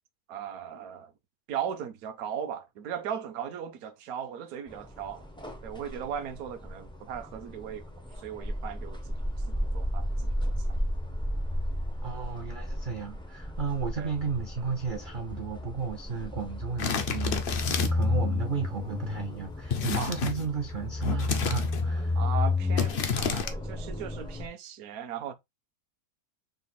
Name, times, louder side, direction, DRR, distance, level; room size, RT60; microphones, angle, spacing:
voice 1, 0.3-1.1 1.5-5.3 5.6-7.9 8.2-9.0 9.5-10.4 14.0-14.1 19.9-20.2 22.1-25.3, right 8 dB, 70° right, 1.1 m, -37 dB
sound 1, 4.7-24.5, left 2 dB, 5° left, 0.3 m, -32 dB
voice 2, 12.0-22.2, right 5 dB, 55° right, 0.5 m, -34 dB
sound 2, 16.8-18.1 19.7-20.5 21.0-21.9 22.8-23.5, left 6 dB, 55° left, 0.6 m, -30 dB
4.0 x 2.5 x 4.1 m
omnidirectional pair, 1.7 m